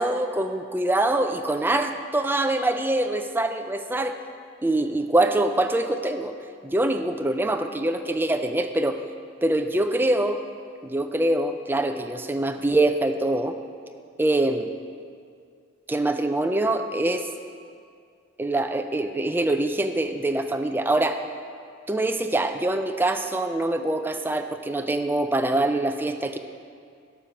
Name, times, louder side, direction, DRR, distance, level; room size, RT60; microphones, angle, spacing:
voice 1, 0.0-4.2 4.6-6.3 6.6-9.0 9.4-10.4 10.8-13.5 14.2-14.7 15.9-17.3 18.4-21.2 21.9-26.4, right 1 dB, 10° right, 7 dB, 0.5 m, -24 dB
12.0 x 6.9 x 5.8 m, 2.3 s
head